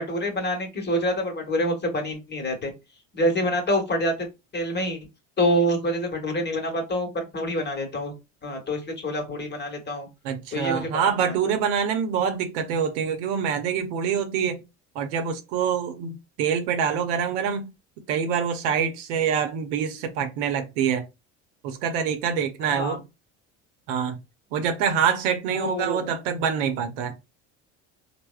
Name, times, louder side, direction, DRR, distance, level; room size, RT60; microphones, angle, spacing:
voice 1, 0.0-2.7 3.1-4.3 4.5-5.0 5.4-8.1 8.4-10.1 10.5-10.9 11.2-11.3 22.6-23.0 25.5-26.1, equal, 30° left, 1.1 m, -26 dB
voice 2, 10.2-14.6 14.9-17.7 18.1-21.0 21.6-23.0 23.9-24.2 24.5-27.1, right 7 dB, 75° right, 0.7 m, -25 dB
3.3 x 2.1 x 2.3 m
supercardioid pair, 85°, 37 cm